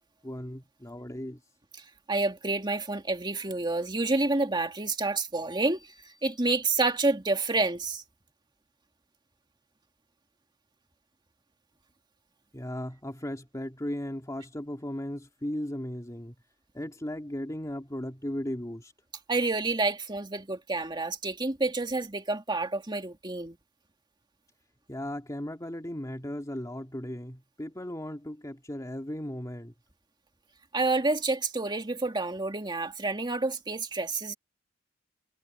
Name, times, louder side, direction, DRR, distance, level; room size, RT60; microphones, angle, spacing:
voice 1, 0.2-1.4 12.5-16.3 16.7-18.9 24.9-29.7, left 1 dB, 15° left, 2.1 m, -36 dB
voice 2, 1.7-8.0 19.3-23.6 30.7-34.3, right 3 dB, 25° right, 2.3 m, -29 dB
head